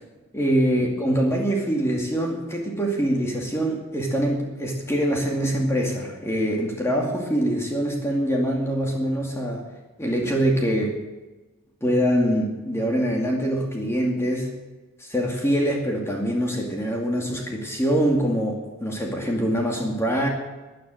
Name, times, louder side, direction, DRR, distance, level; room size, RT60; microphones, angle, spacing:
voice 1, 0.3-9.6 10.0-11.0 11.8-14.5 15.0-20.3, equal, 10° left, 0 dB, 2.3 m, -24 dB
14.0 x 9.8 x 9.1 m, 1.2 s
head